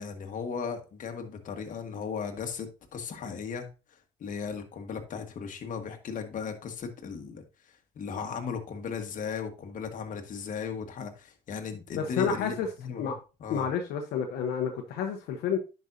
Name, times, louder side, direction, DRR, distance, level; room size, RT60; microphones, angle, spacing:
voice 1, 0.0-13.7, left 6 dB, 55° left, 1.6 m, -37 dB
voice 2, 11.9-12.7 13.0-13.1 13.5-15.6, left 7 dB, 80° left, 1.0 m, -30 dB
10.0 x 5.4 x 2.7 m
cardioid pair, 85°, 16 cm